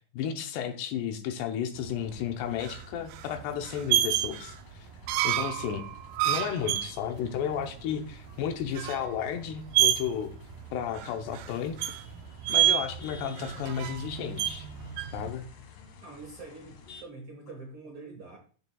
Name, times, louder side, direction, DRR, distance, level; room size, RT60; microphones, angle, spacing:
voice 1, 0.1-4.9 5.2-5.9 6.2-10.3 10.7-11.8 12.5-14.7 15.1-15.4, left 8 dB, 75° left, 6 dB, 2.8 m, -33 dB
sound 1, 1.9-15.3, right 13 dB, 80° right, 2.2 m, -30 dB
sound 2, 2.4-17.1, left 6 dB, 60° left, 3.0 m, -52 dB
voice 2, 16.0-18.4, right 3 dB, 65° right, 1 dB, 1.3 m, -45 dB
15.0 x 6.5 x 2.3 m, 0.41 s
omnidirectional pair, 5.1 m